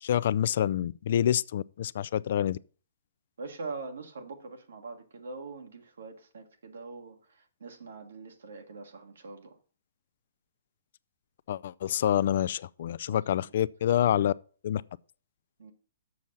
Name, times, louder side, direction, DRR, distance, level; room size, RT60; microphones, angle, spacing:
voice 1, 0.0-2.6 11.5-14.3 14.6-14.8, left 10 dB, 60° left, 0.3 m, -27 dB
voice 2, 3.4-9.6 13.1-13.6 15.6-15.7, right 3 dB, 75° right, 1.6 m, -43 dB
7.1 x 6.2 x 5.9 m
hypercardioid pair, 125°, 0 cm